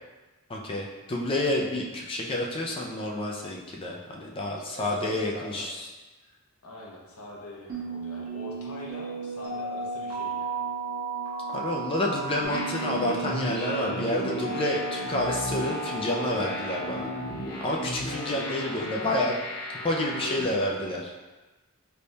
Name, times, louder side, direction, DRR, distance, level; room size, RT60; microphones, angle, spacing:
voice 1, 0.5-5.9 11.5-17.1 17.6-19.3 19.8-21.1, left 1 dB, 25° left, -1 dB, 0.3 m, -29 dB
voice 2, 4.6-5.7 6.6-10.6 18.2-19.1, left 1 dB, 75° left, -3 dB, 0.7 m, -42 dB
sound 1, 7.7-17.3, right 3 dB, 90° right, 1.1 m, -35 dB
sound 2, 12.4-20.4, equal, 40° left, 1.0 m, -35 dB
3.4 x 2.2 x 3.9 m, 1.2 s
head